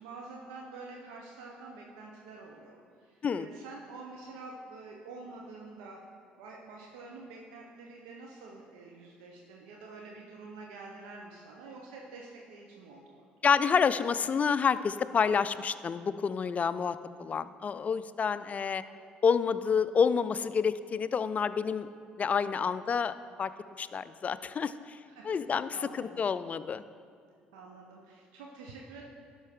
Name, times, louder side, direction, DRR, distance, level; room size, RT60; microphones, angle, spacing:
voice 1, 0.0-6.0 6.4-13.2 25.1-26.3 27.5-29.0, right 3 dB, 85° right, -1 dB, 0.8 m, -47 dB
voice 2, 13.4-18.8 19.2-21.9 22.2-23.5 23.8-25.0 25.2-26.8, left 6 dB, 35° left, 14 dB, 0.3 m, -28 dB
11.5 x 5.5 x 3.6 m, 2.3 s
hypercardioid pair, 65°, 4 cm